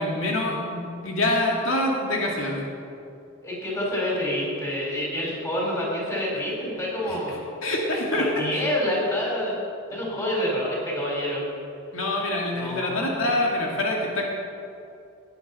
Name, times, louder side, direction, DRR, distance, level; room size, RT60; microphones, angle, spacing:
voice 1, 0.0-2.7 7.0-7.2 7.6-8.6 11.9-14.2, left 1 dB, 75° left, -1 dB, 2.1 m, -25 dB
voice 2, 3.4-7.4 8.1-9.6 9.9-11.4 12.6-13.1, left 1 dB, 15° left, -4 dB, 4.2 m, -27 dB
18.0 x 9.8 x 5.5 m, 2.6 s
head